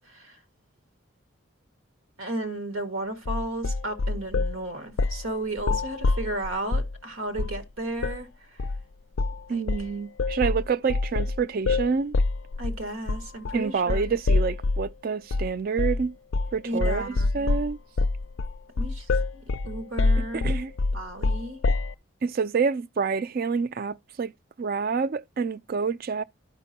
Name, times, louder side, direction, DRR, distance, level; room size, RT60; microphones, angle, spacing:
voice 1, 2.2-8.3 9.5-9.6 12.6-14.2 16.6-17.5 18.8-20.5 20.9-21.6, right 1 dB, 85° right, 1.7 m, -34 dB
sound 1, 3.3-4.6 5.0-5.3 5.6-7.0 7.4-7.6 8.0-8.2 8.6-8.8 9.2-9.4 9.7-14.9 15.3-15.5 15.8-16.1 16.3-16.6 16.8-21.9, left 3 dB, 70° left, 0.4 m, -26 dB
voice 2, 9.5-12.2 13.5-16.2 16.5-17.8 20.2-20.7 22.2-24.3 24.6-26.2, right 5 dB, 45° right, 0.4 m, -28 dB
13.0 x 5.2 x 2.7 m
head